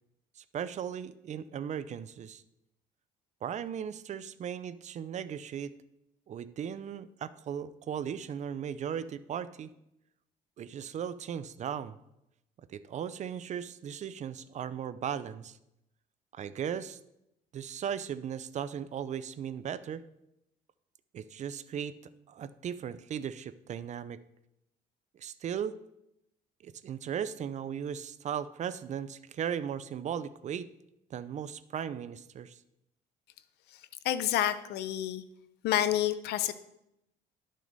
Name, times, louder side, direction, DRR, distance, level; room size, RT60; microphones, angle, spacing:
voice 1, 0.4-2.4 3.4-5.7 6.3-9.7 10.6-12.0 12.7-15.6 16.3-17.0 17.5-20.0 21.1-21.9 22.3-24.2 25.1-25.8 26.6-30.7 31.1-32.6, right 8 dB, 45° right, 15 dB, 0.5 m, -37 dB
voice 2, 34.0-35.2 35.6-36.5, left 12 dB, 75° left, 13 dB, 0.6 m, -28 dB
12.0 x 6.3 x 4.0 m, 0.84 s
cardioid pair, 110°, 17 cm